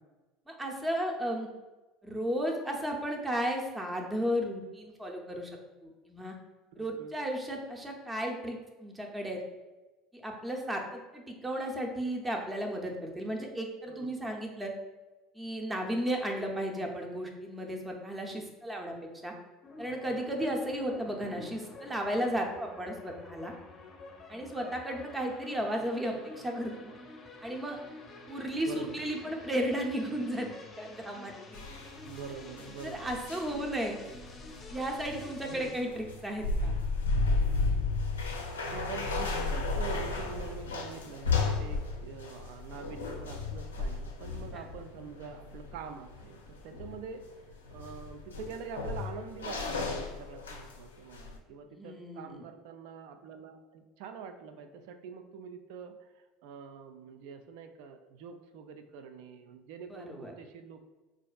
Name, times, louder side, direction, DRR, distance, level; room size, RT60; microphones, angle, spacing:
voice 1, 0.5-1.5 2.0-5.5 5.8-6.4 6.8-9.4 10.1-14.7 15.3-18.9 19.2-19.3 19.8-23.5 24.3-26.9 27.4-27.8 28.3-31.6 32.9-34.0 34.7-36.7 44.5-44.7 51.7-52.4 59.9-60.3, equal, 15° right, 1 dB, 0.6 m, -34 dB
voice 2, 6.7-7.1 13.9-14.3 21.2-21.5 28.6-29.1 32.1-33.1 35.5-35.7 38.2-60.9, right 6 dB, 65° right, 8 dB, 0.3 m, -45 dB
sound 1, 19.6-35.7, left 3 dB, 30° left, 0.6 m, -49 dB
sound 2, 31.5-50.9 51.1-51.4, left 3 dB, 85° left, 0.4 m, -34 dB
4.1 x 2.4 x 2.3 m, 1.1 s
hypercardioid pair, 70°, 0 cm